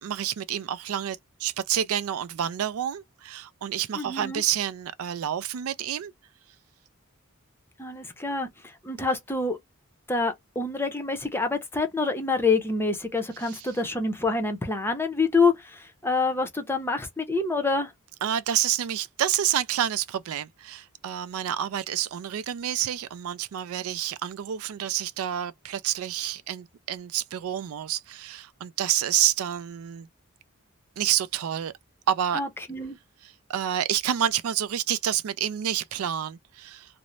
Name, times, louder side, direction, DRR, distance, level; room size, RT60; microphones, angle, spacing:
voice 1, 0.0-6.1 18.2-30.1 31.0-31.7 32.1-32.4 33.5-36.9, right 10 dB, 80° right, 0.4 m, -28 dB
voice 2, 4.0-4.4 7.8-8.5 8.8-9.6 10.1-17.9 32.3-33.0, left 3 dB, 10° left, 0.6 m, -26 dB
2.5 x 2.0 x 2.9 m
head